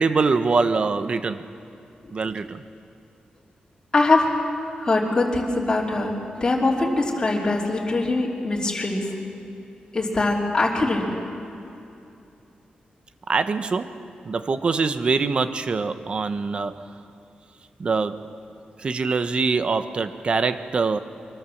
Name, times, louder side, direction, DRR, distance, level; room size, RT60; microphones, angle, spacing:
voice 1, 0.0-1.4 2.1-2.6 13.3-16.9 17.8-18.3 18.8-21.0, right 4 dB, 40° right, 0.9 m, -24 dB
voice 2, 3.9-4.2 4.8-6.1 6.4-9.0 9.9-11.0, left 2 dB, 25° left, 2.9 m, -22 dB
24.0 x 22.0 x 7.2 m
wide cardioid pair, 180°, 3 cm